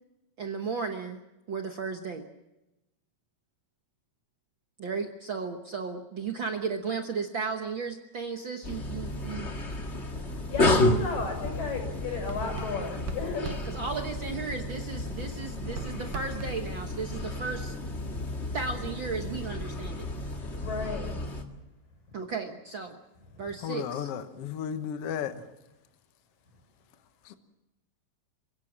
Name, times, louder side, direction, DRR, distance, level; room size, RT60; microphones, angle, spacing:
voice 1, 0.4-1.2 1.5-2.3 4.8-9.5 13.4-17.7 18.5-20.1 22.1-23.0 23.4-24.1, right 5 dB, 55° right, 4 dB, 1.4 m, -35 dB
sound 1, 8.6-21.4, left 2 dB, 25° left, 1.6 m, -31 dB
voice 2, 10.3-13.6 20.6-21.1 23.3-23.4, left 4 dB, 90° left, 3 dB, 7.7 m, -34 dB
Writing, 12.1-14.7 15.1-17.8, right 7 dB, 75° right, 3.2 m, -43 dB
voice 3, 23.6-25.4, left 8 dB, 60° left, 9 dB, 1.8 m, -33 dB
27.5 x 17.5 x 7.4 m, 0.96 s
omnidirectional pair, 3.8 m